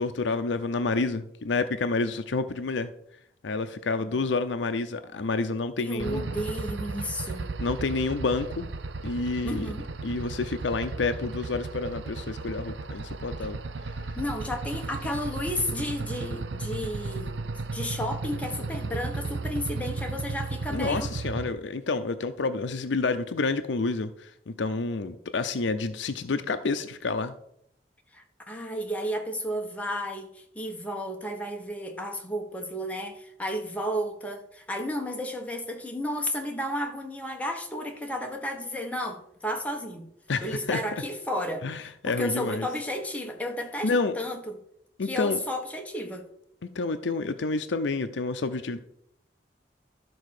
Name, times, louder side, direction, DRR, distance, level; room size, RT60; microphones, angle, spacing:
voice 1, 0.0-2.9 3.4-6.3 7.6-8.7 9.0-9.7 10.0-13.6 20.7-27.3 40.3-40.8 41.6-42.7 43.8-44.2 45.0-45.4 46.7-48.8, left 3 dB, 80° left, 9 dB, 0.6 m, -29 dB
voice 2, 5.8-7.6 9.4-9.9 14.2-17.3 17.7-21.1 28.1-40.1 40.4-44.6 45.0-46.3, equal, 10° left, 2 dB, 1.2 m, -33 dB
sound 1, 6.0-21.5, right 3 dB, 85° right, 0.7 m, -35 dB
12.5 x 4.2 x 6.6 m, 0.73 s
head